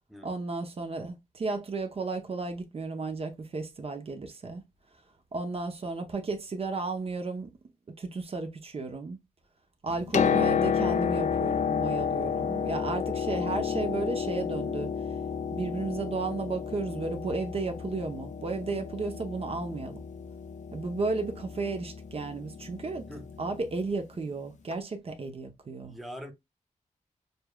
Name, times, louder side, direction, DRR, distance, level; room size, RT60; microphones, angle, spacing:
voice 1, 0.2-4.6 5.3-7.5 8.0-9.2 9.8-14.9 15.5-20.0 20.7-23.1 23.4-26.0, right 3 dB, 45° right, 0.7 m, -33 dB
Piano, 9.9-23.6 24.7-24.8, left 7 dB, 65° left, 0.4 m, -31 dB
voice 2, 23.0-23.3 25.8-26.3, equal, ahead, 0.8 m, -43 dB
6.6 x 2.3 x 2.2 m
wide cardioid pair, 110°, 13 cm